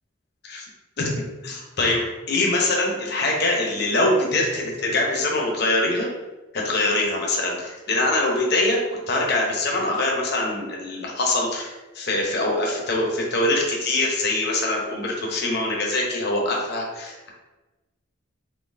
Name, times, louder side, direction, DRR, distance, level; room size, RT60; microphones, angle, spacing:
voice 1, 1.4-6.1 6.5-17.3, left 2 dB, 50° left, -2 dB, 0.9 m, -23 dB
4.0 x 3.8 x 2.7 m, 1.2 s
head